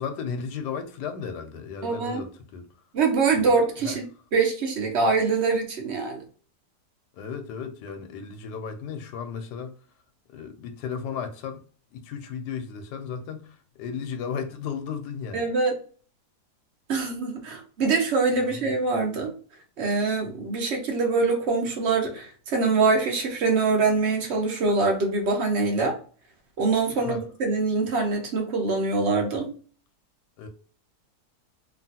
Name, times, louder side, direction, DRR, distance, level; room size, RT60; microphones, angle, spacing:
voice 1, 0.0-2.7 3.4-3.5 3.8-4.0 7.1-9.7 10.3-11.6 11.9-15.5 18.4-18.7 27.0-27.2 30.4-30.5, left 6 dB, 90° left, 1.2 m, -35 dB
voice 2, 1.8-2.2 2.9-4.0 4.3-6.2 15.3-15.7 16.9-19.3 19.8-26.0 26.6-29.5, right 4 dB, 60° right, 0.8 m, -24 dB
3.0 x 2.4 x 2.7 m
omnidirectional pair, 1.7 m